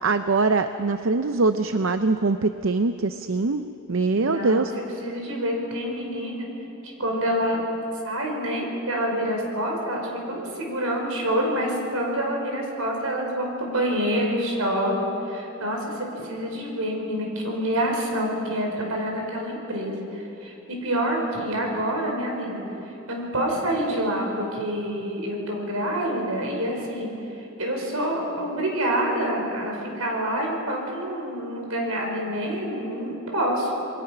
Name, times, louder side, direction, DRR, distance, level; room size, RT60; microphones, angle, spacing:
voice 1, 0.0-3.6 3.9-4.7, right 3 dB, 60° right, 9 dB, 0.6 m, -23 dB
voice 2, 4.2-4.6 5.0-6.5 6.8-7.6 8.0-33.8, equal, 80° right, 1 dB, 5.0 m, -27 dB
28.0 x 21.5 x 5.9 m, 2.9 s
head